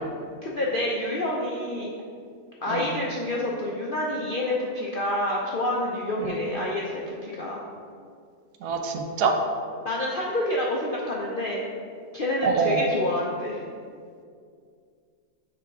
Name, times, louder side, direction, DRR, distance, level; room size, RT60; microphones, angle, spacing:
voice 1, 0.4-1.9 2.6-7.6 9.8-11.6 12.1-13.6, left 1 dB, 60° left, -4 dB, 0.5 m, -28 dB
voice 2, 8.6-9.3 12.4-12.8, right 5 dB, 80° right, 4 dB, 1.2 m, -25 dB
6.8 x 3.4 x 4.8 m, 2.2 s
omnidirectional pair, 1.7 m